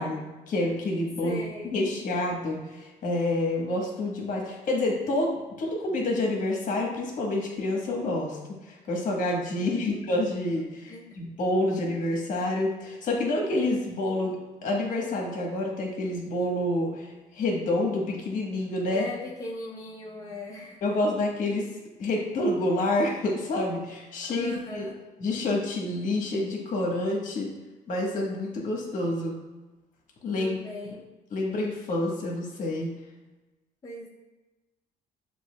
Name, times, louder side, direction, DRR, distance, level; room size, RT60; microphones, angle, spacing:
voice 1, 0.0-1.4 1.7-19.1 20.8-21.7 22.0-24.8 25.2-27.6 27.9-29.4 30.2-30.6 31.3-32.9, left 1 dB, 50° left, -1 dB, 1.2 m, -28 dB
voice 2, 1.2-1.8 9.6-10.1 10.9-11.2 18.9-21.0 24.2-25.0 30.4-31.0 33.8-34.1, left 1 dB, 20° left, -3 dB, 0.5 m, -39 dB
6.7 x 2.8 x 2.2 m, 1.1 s
cardioid pair, 110°, 17 cm